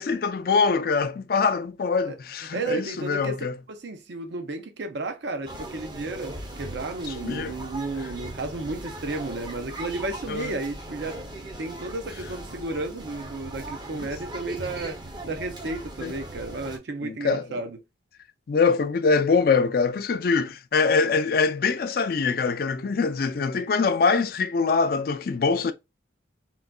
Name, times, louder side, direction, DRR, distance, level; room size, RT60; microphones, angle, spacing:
voice 1, 0.0-3.6 7.1-7.6 10.3-10.5 13.9-14.1 16.0-16.1 17.0-17.5 18.5-25.7, left 4 dB, 50° left, 0.4 m, -24 dB
voice 2, 2.5-3.4 3.7-17.8, right 3 dB, 70° right, 0.6 m, -33 dB
sound 1, 5.5-16.8, right 1 dB, 25° right, 0.6 m, -39 dB
3.8 x 2.2 x 2.3 m
head